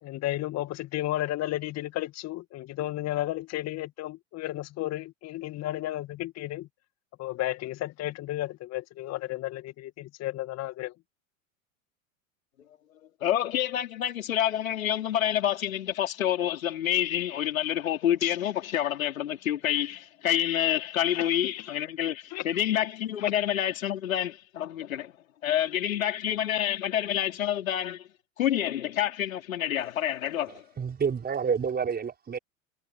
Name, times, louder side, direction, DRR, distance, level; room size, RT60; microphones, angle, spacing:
voice 1, 0.0-6.7 7.2-10.9 21.1-21.4 22.3-22.5 23.2-23.3, left 15 dB, 40° left, 2.0 m, -33 dB
voice 2, 13.2-25.1 25.4-28.0 28.4-30.6, left 11 dB, 75° left, 4.3 m, -28 dB
voice 3, 30.8-32.4, right 6 dB, 25° right, 5.3 m, -28 dB
hypercardioid pair, 90°, 41 cm